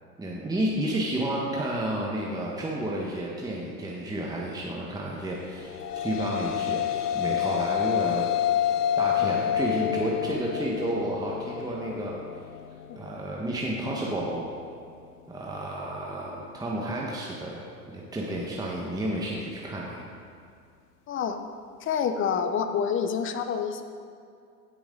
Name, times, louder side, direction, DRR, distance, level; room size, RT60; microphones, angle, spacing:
voice 1, 0.2-8.2 9.0-12.1 13.0-14.5 15.3-20.0, right 1 dB, 10° right, -3 dB, 1.4 m, -31 dB
sound 1, 5.5-14.1, left 10 dB, 80° left, 0.7 m, -29 dB
voice 2, 21.1-21.4 21.8-23.8, left 7 dB, 25° left, 8 dB, 0.8 m, -28 dB
16.0 x 6.9 x 3.9 m, 2.4 s
hypercardioid pair, 90°, 47 cm